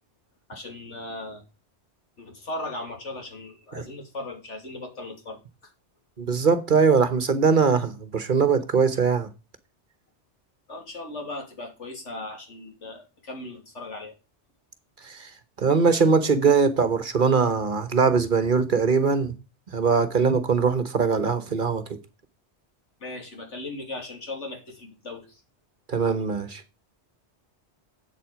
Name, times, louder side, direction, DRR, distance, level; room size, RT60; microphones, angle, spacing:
voice 1, 0.5-1.4 2.2-5.7 10.7-14.1 23.0-25.4, left 2 dB, 90° left, 3.2 m, -37 dB
voice 2, 6.2-9.3 15.0-15.3 15.6-19.3 19.7-21.8 25.9-26.6, right 5 dB, 45° right, 1.2 m, -21 dB
8.1 x 7.6 x 5.0 m
omnidirectional pair, 1.2 m